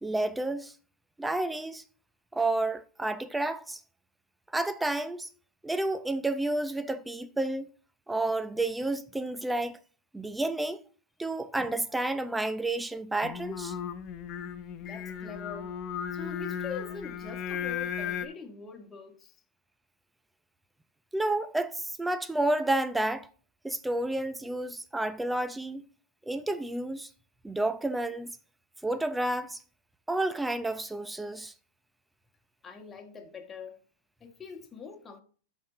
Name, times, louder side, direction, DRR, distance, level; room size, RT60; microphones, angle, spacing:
voice 1, 0.0-0.7 1.2-1.8 2.3-3.8 4.5-5.3 5.6-7.7 8.1-9.8 10.1-10.8 11.2-13.8 21.1-23.3 23.6-25.9 26.3-27.1 27.4-28.3 28.8-29.6 30.1-31.5, right 2 dB, 5° right, 0.6 m, -30 dB
Singing, 13.2-18.3, left 8 dB, 35° left, 0.8 m, -35 dB
voice 2, 14.8-15.8 16.1-19.3 32.6-33.8 34.2-35.2, left 5 dB, 20° left, 1.6 m, -43 dB
12.5 x 4.4 x 3.9 m
hypercardioid pair, 115°, 0 cm